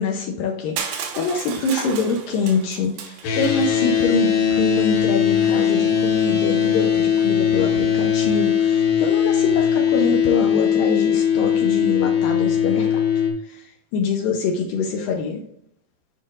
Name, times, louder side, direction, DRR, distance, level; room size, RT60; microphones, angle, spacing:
voice 1, 0.0-13.0 13.4-15.4, left 4 dB, 90° left, 1 dB, 2.0 m, -25 dB
Crushing, 0.8-3.7, right 7 dB, 75° right, 2.8 m, -33 dB
sound 1, 3.2-13.3, left 8 dB, 65° left, 2.7 m, -19 dB
8.7 x 5.4 x 2.5 m, 0.71 s
omnidirectional pair, 5.1 m